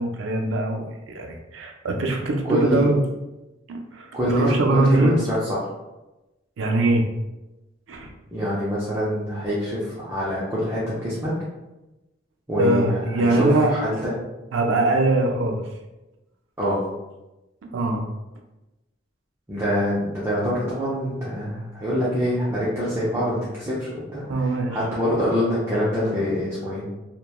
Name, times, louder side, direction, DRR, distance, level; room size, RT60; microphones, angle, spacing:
voice 1, 0.0-3.0 3.7-5.2 6.6-7.1 7.9-8.1 12.6-13.7 14.5-15.6 17.7-18.1 24.3-24.8, right 2 dB, 75° right, 3 dB, 0.4 m, -22 dB
voice 2, 2.5-2.8 4.1-5.7 8.3-11.3 12.5-14.1 16.6-16.8 19.5-24.2 24.7-26.9, equal, 15° right, -9 dB, 0.5 m, -25 dB
2.9 x 2.1 x 2.2 m, 1.0 s
head